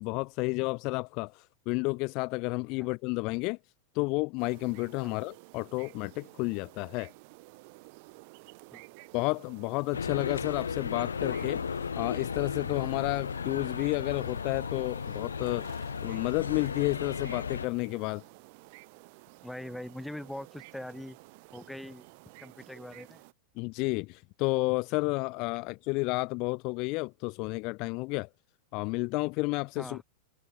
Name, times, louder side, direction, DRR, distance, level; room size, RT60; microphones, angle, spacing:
voice 1, 0.0-3.6 3.9-7.1 9.1-11.7 11.9-15.7 16.0-18.2 23.6-28.3 28.7-30.0, left 27 dB, 40° left, 0.9 m, -31 dB
sound 1, 4.4-23.3, right 29 dB, 45° right, 6.9 m, -52 dB
sound 2, 9.9-17.7, left 6 dB, 70° left, 0.7 m, -35 dB
voice 2, 19.4-21.2 21.5-22.1 22.4-23.2 29.8-30.0, left 1 dB, ahead, 5.6 m, -42 dB
figure-of-eight pair, 90°, 0 cm